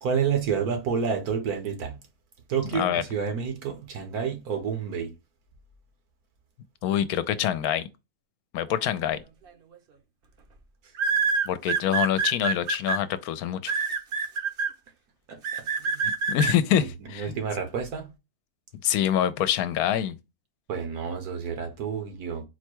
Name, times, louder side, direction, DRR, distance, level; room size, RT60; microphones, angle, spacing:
voice 1, 0.0-2.0 2.5-5.1 15.3-16.0 16.8-18.1 20.7-22.5, right 6 dB, 80° right, 1.5 m, -29 dB
voice 2, 2.7-3.0 6.8-7.9 8.5-9.2 11.5-13.8 16.3-17.4 18.8-20.2, left 10 dB, 80° left, 1.0 m, -25 dB
sound 1, 9.5-9.8 11.0-13.0 13.7-14.7 15.4-16.5, right 5 dB, 50° right, 0.7 m, -26 dB
4.4 x 2.2 x 4.5 m
omnidirectional pair, 1.6 m